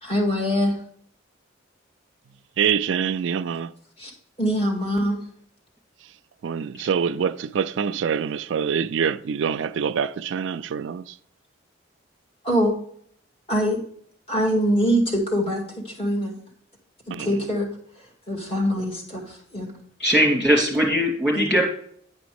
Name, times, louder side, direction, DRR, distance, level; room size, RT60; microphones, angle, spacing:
voice 1, 0.0-0.7 4.0-4.1 4.4-5.2 12.4-12.7 13.5-13.8 14.3-16.3 17.1-17.7 18.3-19.7 21.3-21.4, equal, 30° left, 2.1 m, -23 dB
voice 2, 2.6-3.7 6.0-6.1 6.4-11.2 17.1-17.5, right 7 dB, 70° right, 0.3 m, -25 dB
voice 3, 20.0-21.6, equal, 5° left, 2.7 m, -20 dB
10.0 x 5.1 x 4.8 m
head